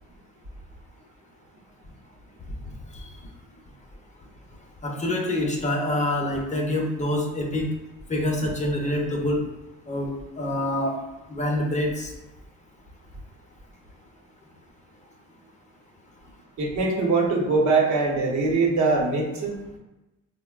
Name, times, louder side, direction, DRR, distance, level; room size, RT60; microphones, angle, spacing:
voice 1, 4.8-7.6 8.1-9.4 9.9-11.0 11.3-12.1, left 1 dB, 25° left, 0 dB, 0.5 m, -26 dB
voice 2, 16.6-19.8, right 3 dB, 70° right, -1 dB, 0.8 m, -22 dB
3.6 x 2.0 x 2.3 m, 1.0 s
cardioid pair, 90°, 30 cm